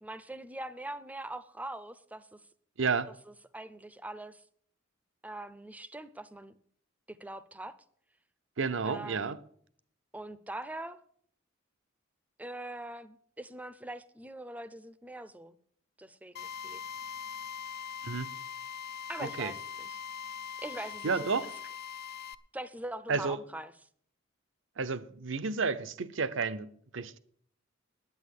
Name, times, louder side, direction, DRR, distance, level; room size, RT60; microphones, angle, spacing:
voice 1, 0.0-2.4 3.5-4.4 5.2-6.5 7.1-7.8 8.8-9.3 10.1-11.0 12.4-15.5 16.0-16.8 19.1-20.0 20.6-21.5 22.5-23.7, right 1 dB, 10° right, 0.6 m, -42 dB
voice 2, 2.8-3.1 8.6-9.4 18.0-18.3 19.2-19.5 21.0-21.5 23.1-23.4 24.8-27.2, right 4 dB, 65° right, 0.7 m, -31 dB
Drill, 16.4-22.4, left 8 dB, 50° left, 0.6 m, -41 dB
9.6 x 9.0 x 8.2 m
head